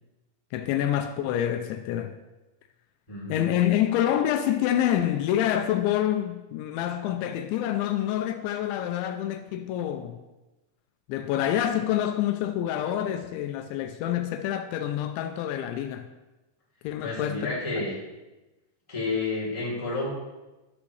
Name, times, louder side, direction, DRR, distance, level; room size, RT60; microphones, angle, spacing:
voice 1, 0.5-2.2 3.3-10.2 11.1-16.1 16.8-17.5, left 11 dB, 85° left, 2.9 m, -27 dB
voice 2, 3.1-3.5 17.0-17.9 18.9-20.1, left 3 dB, 10° left, 2.7 m, -30 dB
13.0 x 12.0 x 3.3 m
omnidirectional pair, 5.3 m